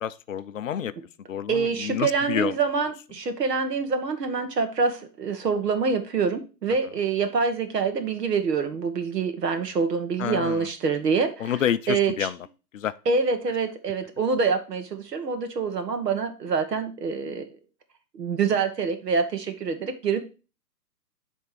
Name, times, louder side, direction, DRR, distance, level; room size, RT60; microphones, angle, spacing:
voice 1, 0.0-0.9 1.3-2.6 10.2-10.7 11.4-12.4 12.7-12.9, left 9 dB, 55° left, 0.5 m, -28 dB
voice 2, 1.5-11.5 11.9-12.3 13.0-17.4 18.2-20.2, right 5 dB, 70° right, 1.6 m, -26 dB
9.3 x 3.6 x 5.0 m
hypercardioid pair, 145°, 50 cm